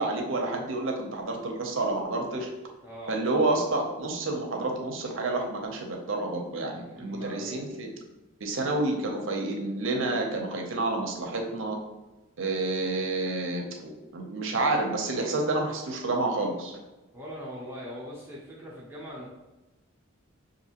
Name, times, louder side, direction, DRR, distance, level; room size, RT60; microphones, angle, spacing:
voice 1, 0.0-2.5 3.1-7.9 8.4-11.8 12.4-16.8, right 2 dB, 60° right, 1 dB, 0.7 m, -29 dB
voice 2, 2.8-3.2 6.9-7.7 17.1-19.3, equal, 10° right, -7 dB, 0.8 m, -41 dB
5.8 x 2.6 x 2.9 m, 1.1 s
head